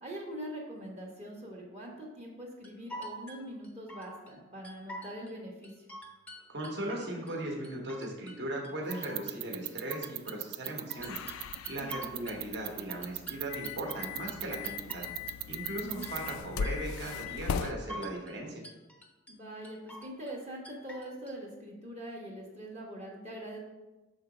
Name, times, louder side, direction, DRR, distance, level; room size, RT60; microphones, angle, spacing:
voice 1, 0.0-5.9 11.7-12.1 15.8-16.1 19.3-23.6, equal, 30° right, -2 dB, 0.9 m, -43 dB
sound 1, 2.6-4.3 4.6-5.3 5.6-7.4 7.6-8.4 8.6-10.4 10.6-12.4 12.6-15.4 15.6-16.4 16.6-17.4 17.6-18.4 18.6-19.3 19.6-20.4 20.6-21.3, equal, 5° left, 0.6 m, -47 dB
voice 2, 6.5-11.2 11.7-15.0 15.5-18.6, right 1 dB, 55° right, 0 dB, 1.2 m, -38 dB
sound 2, 8.9-16.4, right 17 dB, 85° right, 0.3 m, -36 dB
sound 3, 11.0-17.7, left 6 dB, 85° left, 0.4 m, -39 dB
6.3 x 3.9 x 4.8 m, 1.1 s
head